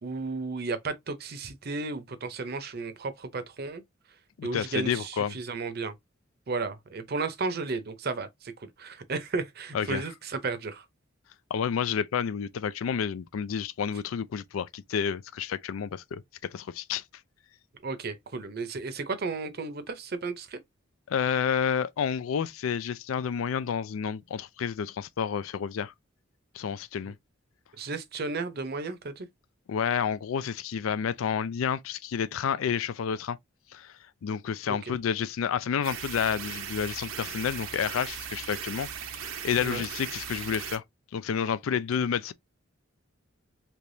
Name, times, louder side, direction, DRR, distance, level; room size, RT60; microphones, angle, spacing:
voice 1, 0.0-3.8 4.4-5.9 6.5-10.8 17.8-20.6 27.8-29.3 34.7-34.9 39.6-39.9, right 3 dB, 50° right, 0.6 m, -34 dB
voice 2, 4.4-5.3 9.7-10.0 11.5-16.2 16.5-17.0 21.1-25.9 26.5-27.1 29.7-33.4 33.7-38.9 39.2-40.8 41.1-42.3, left 7 dB, 85° left, 0.4 m, -30 dB
sound 1, 35.8-40.8, right 8 dB, 85° right, 0.7 m, -38 dB
3.4 x 2.9 x 2.6 m
head